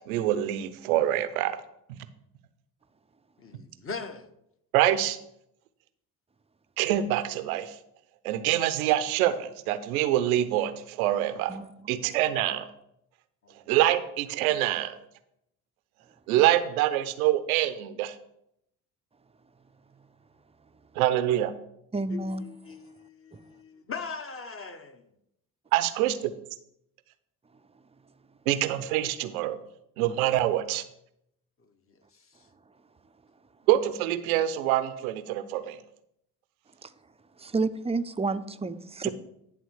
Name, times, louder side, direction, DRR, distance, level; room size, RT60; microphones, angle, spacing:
voice 1, 0.0-1.6 4.7-5.2 6.8-7.8 8.2-11.6 11.9-12.7 13.7-15.0 16.3-18.2 21.0-21.5 25.7-26.3 28.5-29.6 30.0-30.8 33.7-35.8 39.0-39.1, right 13 dB, 80° right, 0.7 m, -25 dB
voice 2, 3.4-4.3 13.4-13.6 22.1-25.0, left 5 dB, 30° left, 1.3 m, -40 dB
voice 3, 21.9-22.4 23.3-23.4 36.8-36.9 37.4-39.1, right 3 dB, 15° right, 0.6 m, -30 dB
11.0 x 3.7 x 6.4 m
hypercardioid pair, 55°, 42 cm